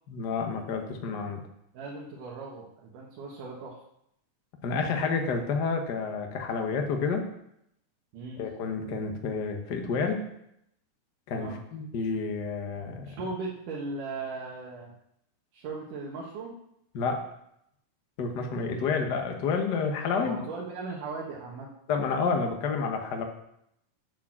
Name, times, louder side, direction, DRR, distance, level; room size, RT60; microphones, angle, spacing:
voice 1, 0.1-1.4 4.6-7.2 8.4-10.2 11.3-13.1 16.9-17.2 18.2-20.5 21.9-23.2, left 5 dB, 50° left, 3 dB, 1.4 m, -29 dB
voice 2, 1.7-3.8 8.1-8.4 11.3-11.6 13.1-14.9 15.5-16.5 18.5-18.8 20.2-21.7, right 3 dB, 85° right, -3 dB, 3.0 m, -38 dB
8.6 x 7.0 x 7.4 m, 0.77 s
omnidirectional pair, 3.5 m